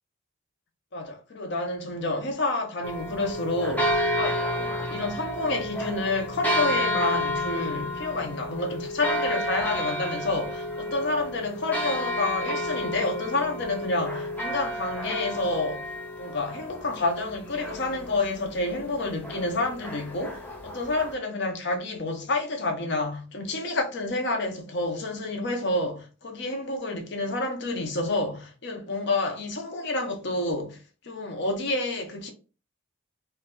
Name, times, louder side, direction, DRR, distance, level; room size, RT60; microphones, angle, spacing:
voice 1, 0.9-15.9 16.2-30.8 31.0-32.3, left 2 dB, 50° left, 0.6 m, -29 dB
sound 1, 2.8-21.1, left 1 dB, 5° left, 0.4 m, -31 dB
2.6 x 2.2 x 3.7 m
head